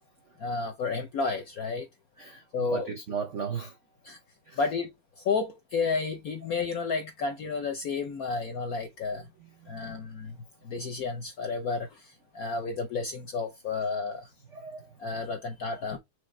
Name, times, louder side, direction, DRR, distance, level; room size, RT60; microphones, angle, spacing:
voice 1, 0.4-1.9 2.5-2.9 4.0-4.2 4.6-4.9 5.2-9.2 9.7-10.4 10.6-11.9 12.3-14.3 15.0-16.0, left 4 dB, 70° left, 0.8 m, -31 dB
voice 2, 2.2-3.8 4.5-4.6 6.4-6.5 9.1-9.9 12.4-12.5 14.4-14.9, right 6 dB, 70° right, 0.7 m, -37 dB
4.9 x 3.2 x 3.1 m
omnidirectional pair, 2.3 m